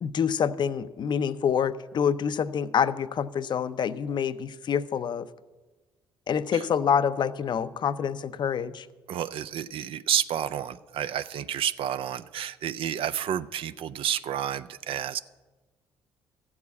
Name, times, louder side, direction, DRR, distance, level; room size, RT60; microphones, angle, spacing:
voice 1, 0.0-5.3 6.3-8.9, left 7 dB, 50° left, 14 dB, 0.5 m, -27 dB
voice 2, 9.1-15.2, right 10 dB, 65° right, 13 dB, 0.4 m, -30 dB
13.0 x 4.8 x 8.3 m, 1.3 s
supercardioid pair, 65°, 10 cm